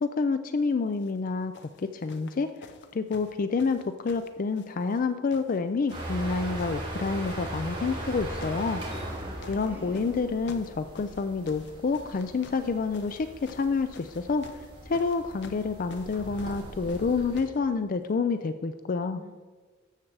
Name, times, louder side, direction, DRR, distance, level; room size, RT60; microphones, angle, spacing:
voice 1, 0.0-2.5 2.9-8.8 9.5-14.5 14.9-19.2, left 4 dB, 45° left, 10 dB, 0.4 m, -28 dB
sound 1, 0.9-1.2 1.5-5.0 5.3-6.3 6.6-7.4 8.0-8.7 8.9-17.6 18.5-18.6, left 3 dB, 60° left, 0.8 m, -50 dB
sound 2, 5.9-17.4, right 1 dB, 25° right, 2.5 m, -39 dB
voice 2, 9.1-10.2 19.1-19.3, equal, 10° right, -1 dB, 1.8 m, -46 dB
12.0 x 7.4 x 4.7 m, 1.4 s
head